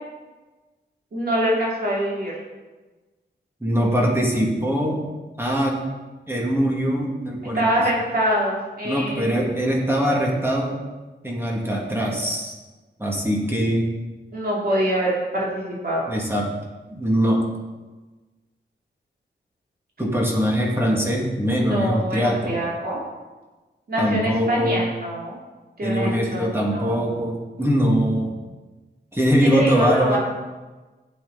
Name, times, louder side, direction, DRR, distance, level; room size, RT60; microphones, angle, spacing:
voice 1, 1.1-2.3 7.5-9.4 14.3-16.1 21.5-23.0 23.9-25.4 25.8-27.2 29.4-30.2, equal, 55° right, -4 dB, 2.7 m, -25 dB
voice 2, 3.6-5.0 5.4-5.8 6.3-7.7 8.8-10.8 11.2-12.5 13.0-13.9 16.1-16.5 16.9-17.5 20.0-22.5 24.0-24.9 25.8-28.4 29.1-30.2, equal, 10° right, -2 dB, 2.1 m, -22 dB
12.0 x 8.1 x 4.0 m, 1.2 s
wide cardioid pair, 110°, 19 cm